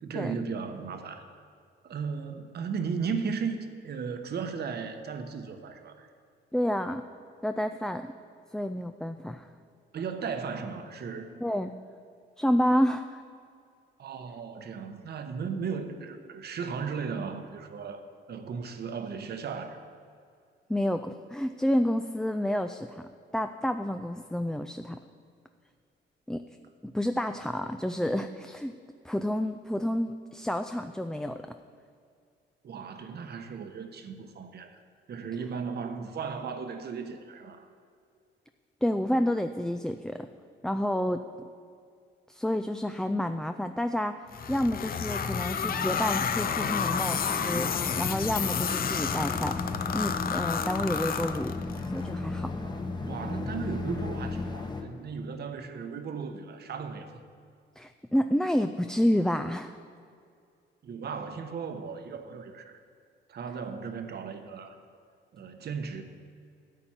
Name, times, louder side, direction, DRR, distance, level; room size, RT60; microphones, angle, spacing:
voice 1, 0.0-1.5 1.8-3.6 3.8-6.1 9.9-11.4 14.0-19.8 32.6-34.8 35.1-37.7 53.1-57.1 60.8-62.8 63.3-64.8 65.3-66.0, right 5 dB, 55° right, 7 dB, 1.0 m, -36 dB
voice 2, 6.5-7.0 7.4-8.0 8.5-9.5 11.4-11.7 12.4-13.2 20.7-23.0 23.3-25.0 26.3-26.4 26.8-28.7 29.0-31.4 38.8-40.3 40.6-41.2 42.3-44.1 44.5-49.5 49.9-51.6 51.9-52.5 57.8-59.7, equal, 5° left, 8 dB, 0.4 m, -29 dB
sound 1, 44.3-51.9, left 7 dB, 45° left, 0.6 m, -30 dB
sound 2, 45.6-54.8, left 3 dB, 20° left, 1.1 m, -35 dB
13.0 x 8.6 x 4.4 m, 2.3 s
cardioid pair, 90°, 20 cm